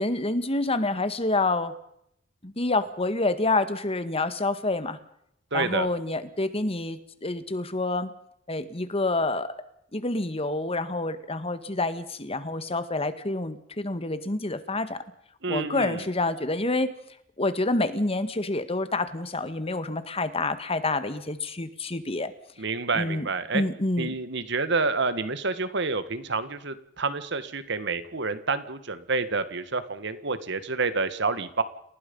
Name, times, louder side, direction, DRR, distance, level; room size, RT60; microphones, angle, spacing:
voice 1, 0.0-1.8 2.4-5.0 5.5-8.1 8.5-9.6 9.9-15.0 15.5-16.9 17.4-22.3 22.9-23.3 23.5-24.2, left 2 dB, 30° left, 11 dB, 1.8 m, -28 dB
voice 2, 5.5-5.9 15.4-16.0 22.6-23.6 24.0-31.6, right 4 dB, 60° right, 12 dB, 1.9 m, -28 dB
29.5 x 19.0 x 5.5 m, 0.72 s
head